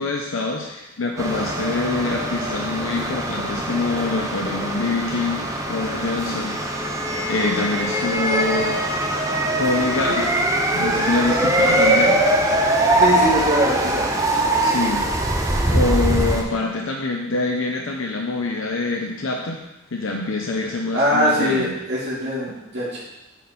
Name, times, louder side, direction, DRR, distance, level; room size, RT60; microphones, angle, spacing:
voice 1, 0.0-6.6 7.3-8.8 9.5-10.3 10.7-12.2 14.6-15.1 15.7-19.6 19.9-21.8, left 3 dB, 70° left, 0 dB, 0.7 m, -25 dB
sound 1, 1.2-16.4, right 1 dB, 15° right, 0.6 m, -22 dB
voice 2, 13.0-14.1 20.9-23.0, equal, 55° right, -8 dB, 2.3 m, -22 dB
8.1 x 4.3 x 4.2 m, 0.96 s
head